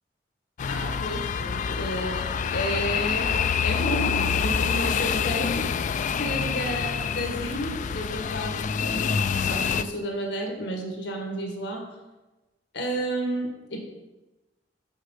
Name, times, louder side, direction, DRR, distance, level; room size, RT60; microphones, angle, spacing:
sound 1, 0.6-9.8, left 6 dB, 45° left, 0.3 m, -26 dB
voice 1, 0.7-5.7 6.1-11.9 12.7-13.8, equal, 90° left, 2 dB, 1.7 m, -32 dB
6.4 x 6.2 x 5.7 m, 1.1 s
head